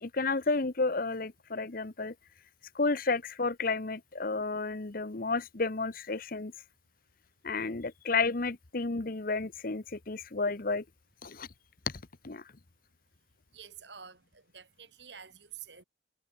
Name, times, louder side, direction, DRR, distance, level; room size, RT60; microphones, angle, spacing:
voice 1, 0.0-2.1 2.7-6.5 7.4-10.8 11.2-11.5 12.2-12.4, left 3 dB, 50° left, 1.0 m, -31 dB
voice 2, 13.5-15.8, right 7 dB, 75° right, 5.9 m, -49 dB
head